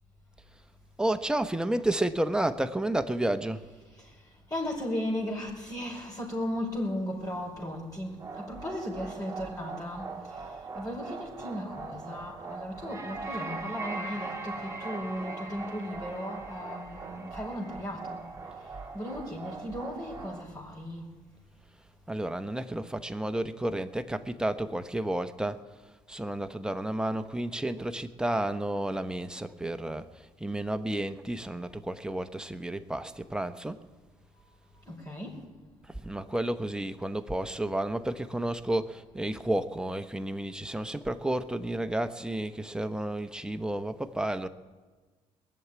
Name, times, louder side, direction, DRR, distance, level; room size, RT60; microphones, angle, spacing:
voice 1, 1.0-3.7 22.1-25.6 26.1-33.8 35.9-44.5, right 1 dB, 5° right, 1.0 m, -31 dB
voice 2, 4.5-18.2 18.9-21.1 34.8-35.4, left 1 dB, 25° left, 5.0 m, -36 dB
sound 1, 8.2-20.4, right 3 dB, 20° right, 2.8 m, -40 dB
20.5 x 7.4 x 9.6 m
supercardioid pair, 70°, 13 cm